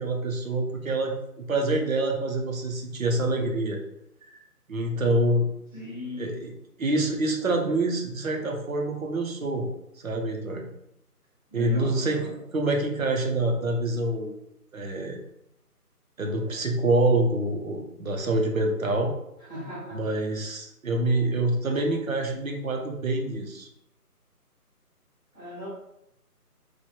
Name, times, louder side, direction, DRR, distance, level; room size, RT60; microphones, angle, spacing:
voice 1, 0.0-3.8 4.3-4.4 4.7-5.5 6.2-6.5 6.8-9.7 10.0-10.6 11.5-14.3 14.7-15.2 16.2-19.1 19.9-23.7, right 2 dB, 60° right, 2 dB, 0.9 m, -26 dB
voice 2, 5.7-6.4 11.5-12.2 19.5-20.1 25.3-25.7, left 1 dB, 5° right, -19 dB, 1.1 m, -38 dB
3.2 x 2.6 x 4.4 m, 0.81 s
figure-of-eight pair, 160°, 47 cm